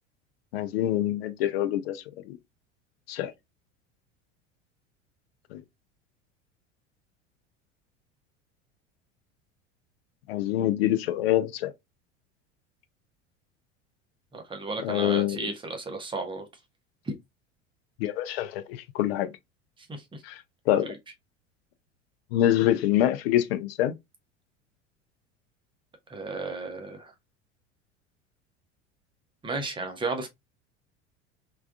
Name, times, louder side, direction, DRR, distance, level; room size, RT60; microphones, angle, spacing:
voice 1, 0.5-2.4 3.1-3.3 5.5-5.6 10.3-11.7 14.8-15.5 18.0-19.3 20.2-20.9 22.3-24.0, left 12 dB, 50° left, 0.5 m, -26 dB
voice 2, 14.3-16.4 17.0-17.1 19.9-20.2 20.8-21.0 26.1-27.1 29.4-30.3, right 3 dB, 15° right, 0.7 m, -34 dB
3.4 x 2.4 x 2.3 m
figure-of-eight pair, 75°, 38 cm